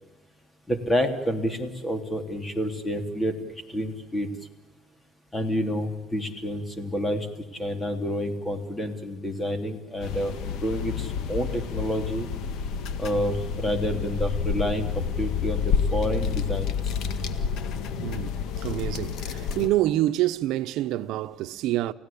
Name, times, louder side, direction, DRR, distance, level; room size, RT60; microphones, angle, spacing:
voice 1, 0.7-3.3 3.7-4.3 5.3-7.3 7.5-12.3 13.0-16.7, equal, 15° left, 3.0 m, -29 dB
sound 1, 10.0-19.7, left 6 dB, 75° left, 1.9 m, -29 dB
voice 2, 18.0-21.9, right 15 dB, 80° right, 0.9 m, -27 dB
30.0 x 16.0 x 8.6 m
cardioid pair, 125°, 0 cm